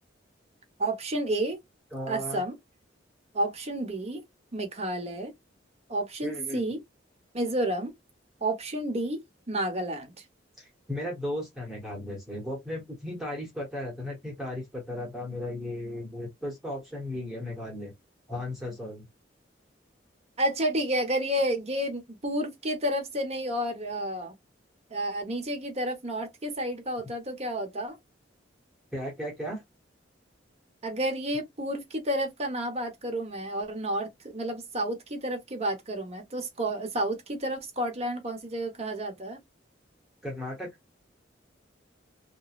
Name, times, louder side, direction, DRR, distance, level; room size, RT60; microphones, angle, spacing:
voice 1, 0.8-1.6 2.1-2.6 3.3-4.2 4.5-5.3 5.9-6.8 7.3-7.9 8.4-9.2 9.5-10.1 20.4-24.3 24.9-28.0 30.8-39.4, right 1 dB, 35° right, 1.0 m, -30 dB
voice 2, 1.9-2.4 6.2-6.6 10.6-17.9 18.3-19.1 28.9-29.6 40.2-40.7, left 1 dB, ahead, 1.0 m, -35 dB
3.0 x 2.2 x 2.4 m
head